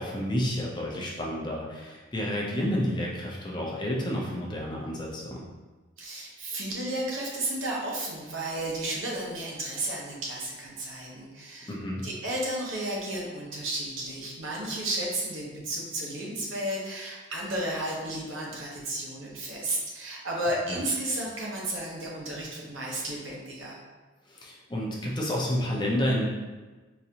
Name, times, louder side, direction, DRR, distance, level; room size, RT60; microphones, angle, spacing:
voice 1, 0.0-5.4 11.7-12.0 20.7-20.8 24.3-26.3, equal, 20° left, -2 dB, 0.5 m, -30 dB
voice 2, 6.0-23.8, right 1 dB, 75° right, -3 dB, 0.9 m, -33 dB
4.0 x 2.6 x 2.8 m, 1.3 s
head